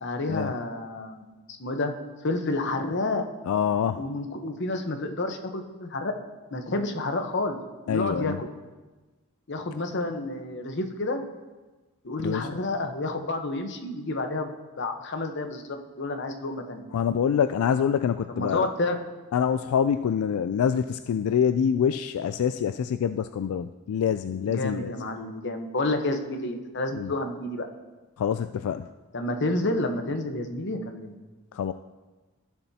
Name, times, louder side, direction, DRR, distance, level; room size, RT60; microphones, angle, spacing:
voice 1, 0.0-1.3 1.6-1.9 2.2-3.2 4.0-6.1 6.5-7.6 7.9-8.5 9.5-11.2 12.0-16.8 18.3-19.0 24.5-27.7 29.1-31.2, left 2 dB, 55° left, 5 dB, 1.0 m, -30 dB
voice 2, 3.5-4.0 7.9-8.4 12.2-12.5 16.9-18.7 19.3-24.9 26.9-27.1 28.2-28.9 31.5-31.7, left 8 dB, 85° left, 11 dB, 0.3 m, -25 dB
16.5 x 7.0 x 2.8 m, 1.2 s
head